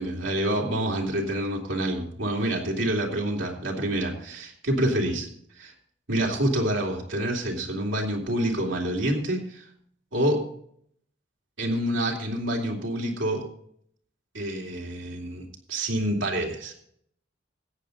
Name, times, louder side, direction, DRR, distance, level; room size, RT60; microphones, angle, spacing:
voice 1, 0.0-5.3 5.5-5.7 6.1-9.6 10.1-10.4 11.6-13.4 14.3-16.7, right 1 dB, 80° right, -1 dB, 2.7 m, -27 dB
14.5 x 9.1 x 4.0 m, 0.66 s
head